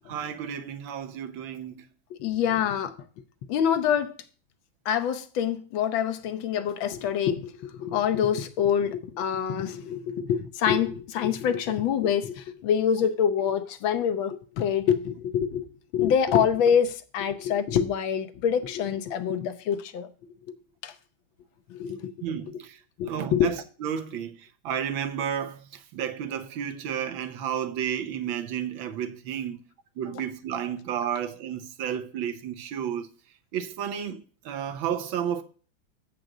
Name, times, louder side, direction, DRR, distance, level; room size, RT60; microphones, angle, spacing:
voice 1, 0.1-1.8 22.2-22.8 23.0-29.6 30.0-33.1 33.5-35.4, right 9 dB, 85° right, 1.6 m, -32 dB
voice 2, 2.2-3.0 3.5-4.1 4.9-15.7 15.9-20.1 20.8-20.9 21.7-22.1 23.0-23.5, left 8 dB, 85° left, 1.6 m, -26 dB
7.8 x 5.2 x 5.9 m
omnidirectional pair, 2.1 m